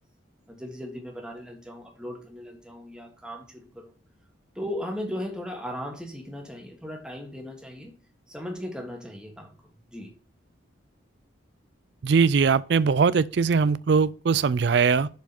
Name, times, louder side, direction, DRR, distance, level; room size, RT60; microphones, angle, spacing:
voice 1, 0.5-3.9 4.5-7.9 8.3-9.5 9.9-10.1, equal, 5° right, 1.6 m, -37 dB
voice 2, 12.0-15.1, right 5 dB, 60° right, 0.4 m, -21 dB
6.9 x 4.7 x 5.8 m
head